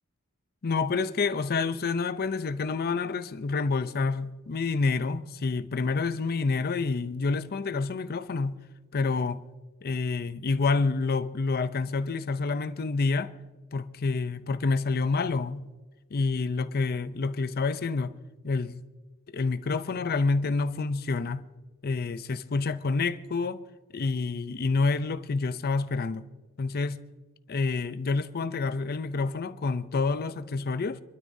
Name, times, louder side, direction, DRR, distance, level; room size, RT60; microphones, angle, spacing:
voice 1, 0.6-8.6 8.9-9.4 9.8-13.3 13.7-15.7 16.1-18.2 18.4-18.8 19.3-21.5 21.8-23.6 23.9-26.2 26.6-27.0 27.5-31.0, left 4 dB, 45° left, 0.5 m, -28 dB
27.0 x 12.5 x 2.7 m
head